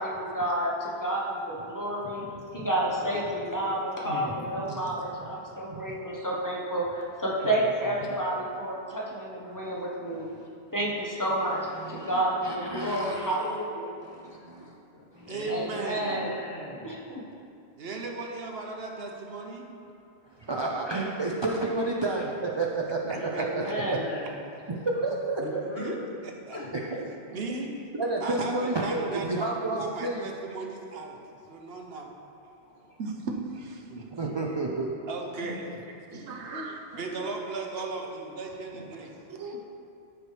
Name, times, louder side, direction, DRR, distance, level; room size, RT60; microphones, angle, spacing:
voice 1, 0.0-2.2 2.5-10.3 10.7-11.6 11.9-13.9 15.5-16.3 16.8-17.0 23.3-24.0, right 1 dB, 20° left, -4 dB, 0.9 m, -30 dB
voice 2, 2.2-2.7 4.7-4.8 5.2-5.3 5.7-5.9 9.6-9.8 10.1-10.5 11.8-13.6 14.0-14.7 15.1-15.3 20.2-23.0 23.4-23.6 23.9-24.0 24.8-25.6 26.9-27.1 27.9-30.2 34.1-34.9, right 2 dB, 35° right, -1 dB, 0.4 m, -31 dB
voice 3, 4.0-4.5 7.4-8.3 13.9-14.6 14.9-17.0 21.3-21.4 23.1-24.4 25.4-26.0 26.5-27.1 31.8-31.9 32.6-33.0 34.9-35.0 38.7-39.1, left 1 dB, 70° left, -3 dB, 1.5 m, -41 dB
voice 4, 15.3-16.3 17.8-19.7 23.3-23.7 25.8-26.0 26.2-26.6 27.3-27.8 28.2-31.2 31.5-32.1 33.9-34.1 35.1-35.6 37.0-39.1, right 3 dB, 65° right, 1 dB, 1.0 m, -36 dB
voice 5, 33.0-34.0 36.1-37.3 37.9-38.1 39.3-39.6, right 3 dB, 90° right, 1 dB, 1.1 m, -37 dB
13.0 x 4.6 x 3.3 m, 2.5 s
omnidirectional pair, 1.1 m